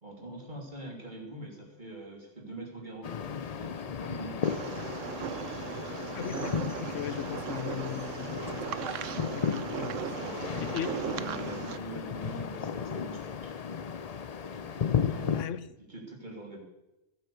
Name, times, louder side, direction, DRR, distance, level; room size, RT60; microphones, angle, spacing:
voice 1, 0.0-4.9 9.6-13.8 14.4-15.5 15.8-16.6, right 2 dB, 40° right, 0 dB, 3.3 m, -44 dB
sound 1, 3.0-15.4, left 7 dB, 45° left, 0.5 m, -35 dB
sound 2, 4.4-11.8, right 9 dB, 85° right, 1.1 m, -38 dB
voice 2, 6.1-9.9 10.7-10.9 15.3-15.6, left 10 dB, 90° left, 17 dB, 1.0 m, -38 dB
15.5 x 9.0 x 7.0 m, 0.97 s
omnidirectional pair, 1.3 m